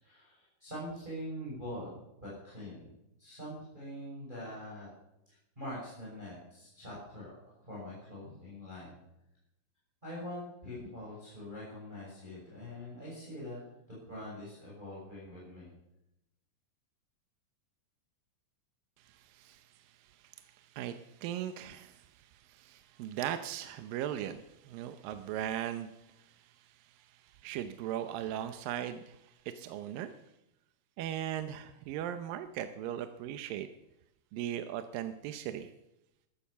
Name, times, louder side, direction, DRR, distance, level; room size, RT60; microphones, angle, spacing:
voice 1, 0.0-2.9 3.2-4.9 5.3-9.0 10.0-13.6 13.9-15.7, left 1 dB, 10° right, -7 dB, 6.5 m, -44 dB
voice 2, 19.0-30.1 31.0-33.7 34.3-35.7, right 11 dB, 80° right, 9 dB, 2.5 m, -39 dB
15.0 x 13.0 x 6.8 m, 0.87 s
omnidirectional pair, 4.0 m